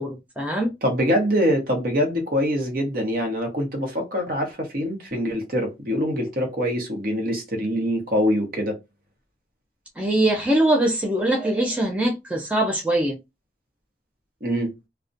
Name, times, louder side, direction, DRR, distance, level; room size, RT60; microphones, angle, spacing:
voice 1, 0.0-0.7 10.0-13.2, right 1 dB, 5° right, 0.4 m, -22 dB
voice 2, 0.8-8.8 14.4-14.7, equal, 55° right, 0.9 m, -24 dB
2.3 x 2.1 x 2.5 m
head